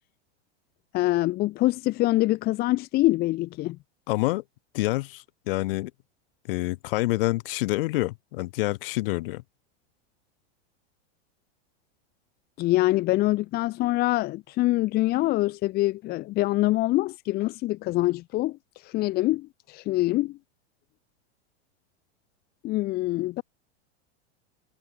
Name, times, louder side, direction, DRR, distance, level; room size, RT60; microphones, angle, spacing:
voice 1, 0.9-3.8 12.6-18.6 18.8-20.4 22.6-23.4, left 17 dB, 25° left, 1.8 m, -25 dB
voice 2, 4.1-4.4 4.7-5.9 6.5-9.4, left 20 dB, 50° left, 3.1 m, -27 dB
supercardioid pair, 165°, 35 cm